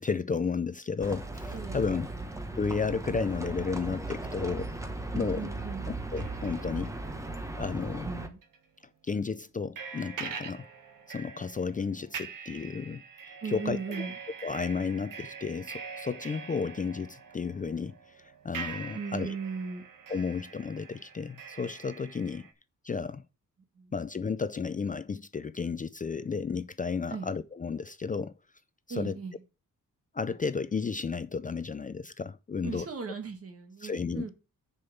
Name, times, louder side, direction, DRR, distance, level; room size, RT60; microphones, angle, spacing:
voice 1, 0.0-2.1 2.6-4.7 5.1-5.5 5.9-6.9 7.6-8.1 9.0-10.7 11.1-14.1 14.4-19.4 20.1-22.5 22.8-23.2 23.9-28.3 28.9-29.2 30.1-32.9 33.8-34.3, left 5 dB, 25° left, 0.4 m, -33 dB
Livestock farm animals working animals, 1.0-8.3, right 2 dB, 10° right, 1.0 m, -37 dB
voice 2, 5.1-5.9 7.8-8.4 13.4-14.1 18.9-19.8 23.8-23.9 27.1-27.3 28.9-29.4 32.6-34.3, right 5 dB, 45° right, 1.7 m, -37 dB
sound 1, 6.0-8.0 8.4-8.6 9.8-22.5, right 6 dB, 85° right, 1.6 m, -44 dB
6.9 x 5.3 x 7.0 m
wide cardioid pair, 165°, 32 cm